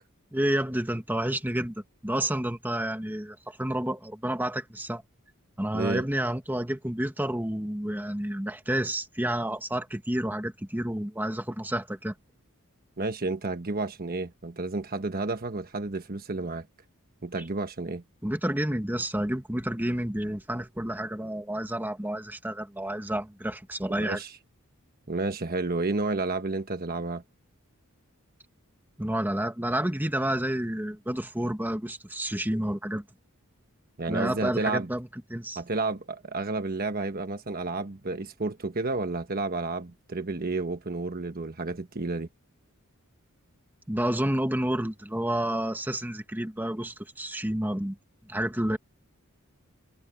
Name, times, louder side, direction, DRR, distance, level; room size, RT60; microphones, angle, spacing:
voice 1, 0.3-5.0 5.6-12.1 18.2-24.2 29.0-33.0 34.1-35.6 43.9-48.0 48.2-48.8, right 1 dB, 10° right, 1.7 m, -30 dB
voice 2, 5.7-6.0 13.0-16.7 17.2-18.0 24.0-24.3 25.1-27.2 34.0-34.9 35.6-42.3, right 3 dB, 45° right, 1.2 m, -31 dB
head